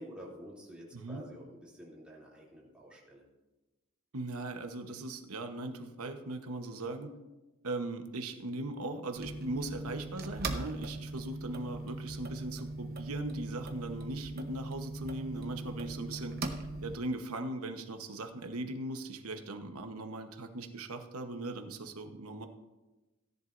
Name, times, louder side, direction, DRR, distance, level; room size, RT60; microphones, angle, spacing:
voice 1, 0.0-3.2, equal, 5° right, -6 dB, 2.9 m, -49 dB
voice 2, 0.9-1.2 4.1-7.1 7.6-16.4 16.8-22.5, right 2 dB, 85° right, 6 dB, 1.1 m, -39 dB
sound 1, 9.2-17.0, right 2 dB, 45° right, 1.0 m, -40 dB
17.0 x 10.5 x 2.6 m, 1.1 s
head